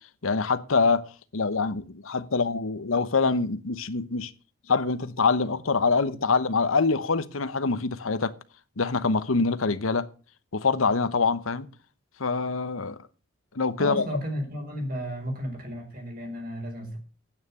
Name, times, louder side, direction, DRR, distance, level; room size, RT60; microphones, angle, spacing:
voice 1, 0.2-1.1 1.3-4.3 4.7-8.3 8.8-10.1 10.5-11.7 12.2-13.0 13.5-14.1, left 4 dB, 85° left, 0.9 m, -25 dB
voice 2, 13.8-17.0, equal, 45° right, 5.0 m, -33 dB
9.7 x 9.1 x 7.0 m
head